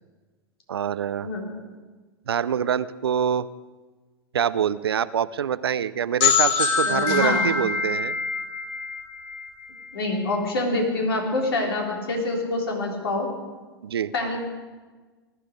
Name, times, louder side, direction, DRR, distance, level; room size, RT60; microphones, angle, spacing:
voice 1, 0.7-1.3 2.3-3.5 4.3-8.2 13.8-14.1, right 8 dB, 85° right, 17 dB, 0.5 m, -25 dB
voice 2, 1.2-1.5 6.9-7.6 9.9-13.3 14.1-14.4, left 2 dB, 80° left, 0 dB, 3.8 m, -26 dB
sound 1, 6.2-9.9, left 6 dB, 50° left, 1.9 m, -24 dB
20.0 x 12.0 x 5.2 m, 1.3 s
hypercardioid pair, 100°, 13 cm